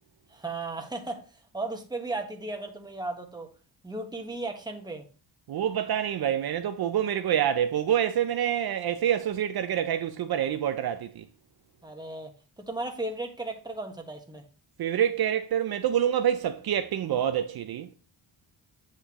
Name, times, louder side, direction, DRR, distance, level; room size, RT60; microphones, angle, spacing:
voice 1, 0.3-3.5 3.8-5.0 11.8-14.4, right 2 dB, 10° right, 1.3 m, -35 dB
voice 2, 5.5-11.2 14.8-17.9, right 10 dB, 55° right, 0.6 m, -27 dB
8.3 x 5.7 x 3.0 m
cardioid pair, 100°, 44 cm